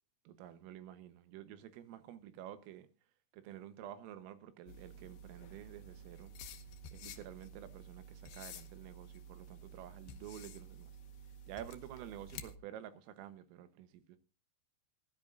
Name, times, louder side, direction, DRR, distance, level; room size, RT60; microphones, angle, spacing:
voice 1, 0.3-2.9 3.3-6.3 6.9-10.9 11.5-14.2, right 11 dB, 90° right, 3.7 m, -50 dB
sound 1, 4.7-12.6, equal, 75° left, 2.3 m, -51 dB
18.5 x 12.0 x 2.5 m
omnidirectional pair, 5.7 m